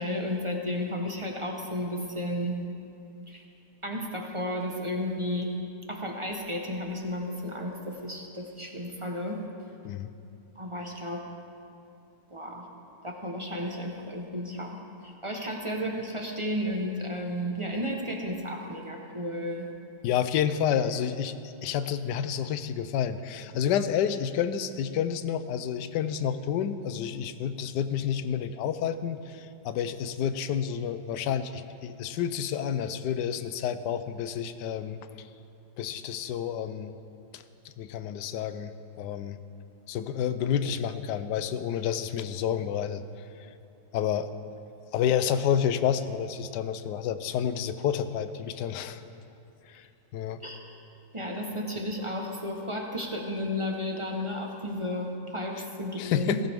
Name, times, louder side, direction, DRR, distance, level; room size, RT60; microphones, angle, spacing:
voice 1, 0.0-2.5 3.3-3.4 3.8-5.5 5.9-9.4 10.6-11.2 12.3-12.6 13.0-14.8 15.0-19.7 50.4-50.6 51.1-56.4, left 1 dB, 20° right, 0 dB, 0.9 m, -33 dB
voice 2, 20.0-21.3 21.6-35.3 35.8-36.9 37.3-37.4 37.8-38.7 39.0-39.4 39.9-43.0 43.9-44.3 44.9-49.0 49.7-49.8 50.1-50.4 56.0-56.4, left 8 dB, 75° left, 12 dB, 1.2 m, -29 dB
16.5 x 15.5 x 3.6 m, 2.6 s
omnidirectional pair, 1.9 m